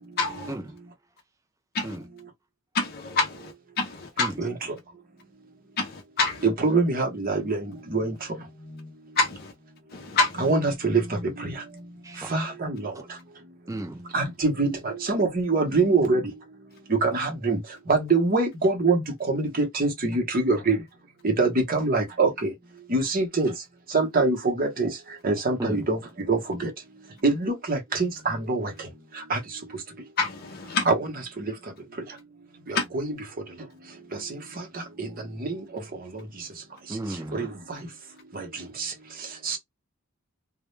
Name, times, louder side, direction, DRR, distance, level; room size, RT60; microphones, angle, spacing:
voice 1, 0.2-0.5 1.7-1.9 2.7-3.5 3.8-4.3 5.8-6.4 9.2-9.5 9.9-10.4 30.2-30.8 32.7-32.8, left 3 dB, 45° left, 0.5 m, -26 dB
voice 2, 6.4-7.6 7.9-8.1 10.4-11.0 11.4-11.5 12.3-12.8 14.1-16.2 17.0-17.6 17.9-19.0 19.3-20.8 21.2-22.5 22.9-23.5 23.9-24.9 25.2-26.0 26.3-26.7 27.2-28.7 29.3-29.4 30.9-31.1 32.7-33.1 35.0-35.1 35.4-35.6 37.3-37.5 38.8-38.9 39.5-39.6, right 3 dB, 40° right, 0.8 m, -24 dB
voice 3, 13.7-14.0 25.6-25.9 36.9-37.5, right 1 dB, 15° right, 0.3 m, -34 dB
2.2 x 2.0 x 3.0 m
head